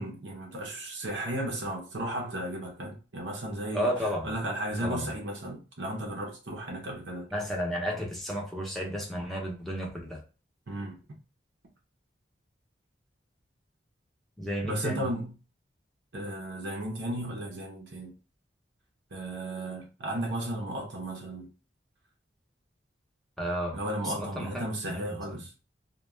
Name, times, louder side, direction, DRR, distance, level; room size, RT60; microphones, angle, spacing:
voice 1, 0.0-3.9 4.2-7.3 10.7-11.0 14.6-15.3 16.1-18.1 19.1-21.5 23.7-25.5, right 1 dB, 70° right, 0.6 m, -34 dB
voice 2, 3.7-4.3 4.8-5.1 7.3-10.2 14.4-15.1 23.4-23.8 24.0-25.2, equal, ahead, 0.7 m, -32 dB
2.3 x 2.2 x 3.1 m
head